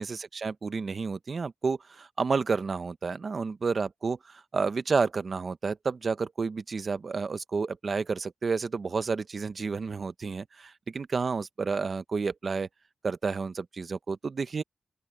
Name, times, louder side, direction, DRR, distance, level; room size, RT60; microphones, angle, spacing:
voice 1, 0.0-12.7 13.0-14.6, right 4 dB, 55° right, 0.9 m, -30 dB
open air
wide cardioid pair, 125°, 0 cm